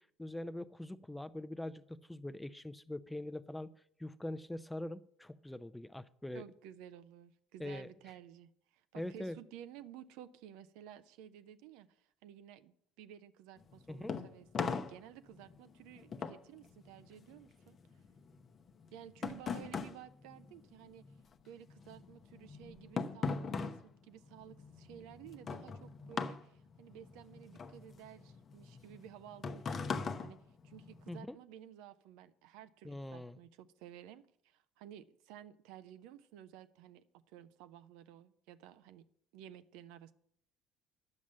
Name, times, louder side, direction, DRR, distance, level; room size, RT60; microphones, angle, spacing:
voice 1, 0.0-3.7 4.0-6.4 7.6-7.9 8.9-9.4 13.9-14.2 31.1-31.4 32.8-33.4, left 1 dB, 5° left, 14 dB, 0.6 m, -43 dB
voice 2, 6.3-17.8 18.9-21.0 21.4-39.0 39.3-40.1, right 11 dB, 60° right, 12 dB, 0.6 m, -54 dB
sound 1, 13.6-21.2 21.5-31.2, left 5 dB, 35° left, 0.8 m, -41 dB
11.0 x 7.3 x 8.2 m, 0.66 s
figure-of-eight pair, 55°, 0 cm